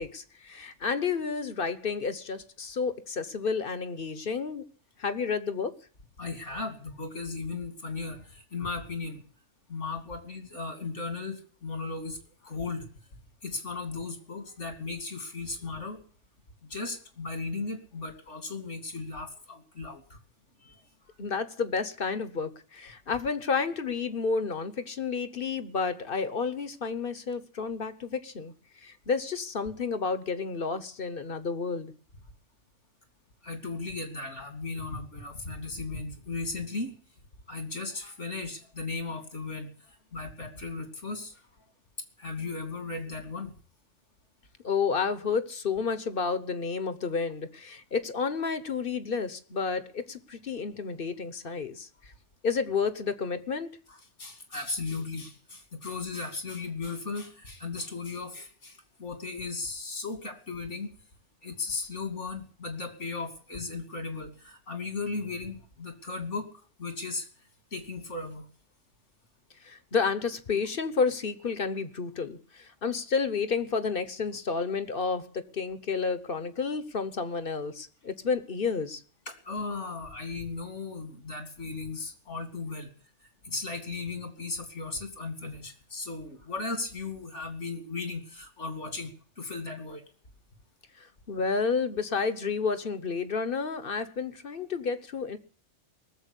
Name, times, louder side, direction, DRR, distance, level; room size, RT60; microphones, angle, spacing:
voice 1, 0.0-4.6 5.0-5.7 21.2-28.5 28.8-31.9 44.6-51.9 52.4-53.7 69.6-79.0 91.3-95.4, left 5 dB, 50° left, 1.2 m, -30 dB
voice 2, 6.2-9.2 9.7-12.9 13.4-16.0 16.7-20.2 20.6-21.2 33.4-36.9 37.5-41.4 42.2-43.5 53.9-60.9 61.4-66.5 66.8-68.5 79.3-82.9 83.2-89.1 89.4-90.0, left 3 dB, 85° left, 3.0 m, -36 dB
19.0 x 7.5 x 9.8 m
omnidirectional pair, 1.2 m